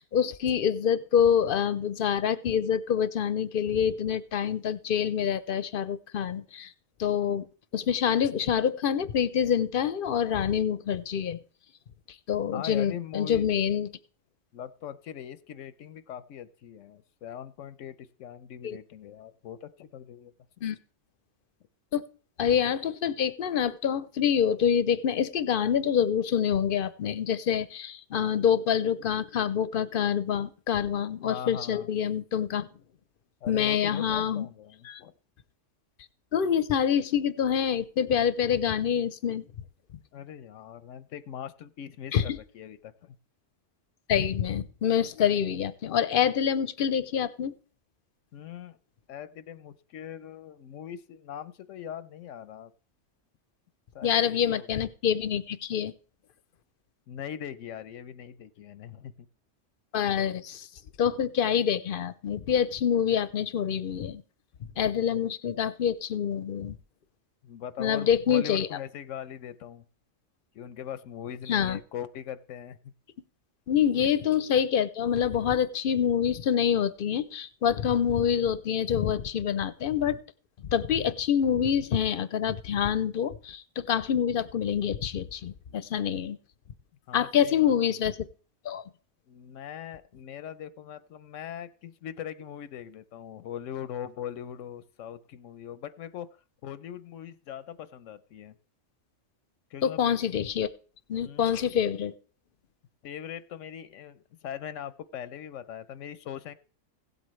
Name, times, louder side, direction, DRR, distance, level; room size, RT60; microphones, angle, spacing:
voice 1, 0.0-6.7 7.0-7.5 7.7-11.4 12.3-13.9 18.6-18.8 20.6-20.8 21.9-22.0 22.4-32.7 33.5-34.5 34.8-35.0 36.3-39.4 42.1-42.4 44.1-47.5 54.0-55.9 59.9-60.7 61.0-64.2 64.8-66.8 67.8-68.7 71.5-71.8 73.7-80.2 80.7-86.4 87.1-88.3 88.6-88.8 99.8-100.7 101.1-102.1, left 8 dB, 55° left, 0.7 m, -26 dB
voice 2, 12.5-13.5 14.5-20.3 31.3-31.9 33.4-35.1 40.1-43.2 48.3-48.8 49.1-52.7 53.9-54.9 57.1-59.3 67.4-69.8 70.5-72.8 87.1-87.7 89.3-96.3 96.6-98.5 99.7-100.0 101.2-101.6 103.0-106.5, left 9 dB, 90° left, 1.0 m, -41 dB
16.5 x 8.1 x 3.1 m
omnidirectional pair, 1.3 m